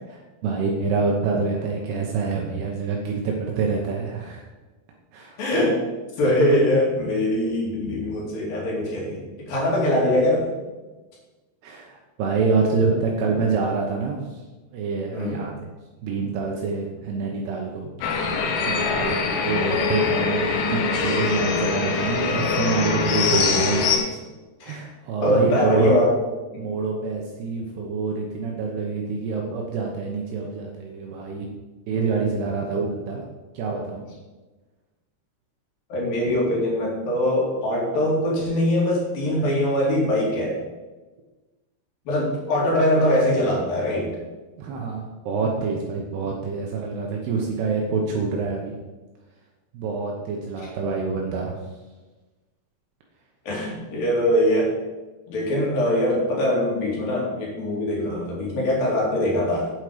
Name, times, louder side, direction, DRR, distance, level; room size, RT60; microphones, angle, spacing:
voice 1, 0.1-4.4 5.1-5.4 11.6-14.4 14.7-15.5 16.0-18.4 18.6-24.2 24.7-25.9 26.6-31.5 31.9-33.2 33.5-34.1 44.6-48.8 49.7-51.6, right 4 dB, 75° right, 0 dB, 3.0 m, -26 dB
voice 2, 5.4-5.8 6.2-10.5 15.1-15.5 18.8-19.1 24.6-24.8 25.2-26.1 35.9-40.6 42.1-44.1 53.5-54.7 55.3-59.7, left 1 dB, 60° left, -3 dB, 3.9 m, -22 dB
sound 1, 18.0-24.0, left 4 dB, 85° left, 3.3 m, -23 dB
9.1 x 8.0 x 5.0 m, 1.2 s
omnidirectional pair, 4.8 m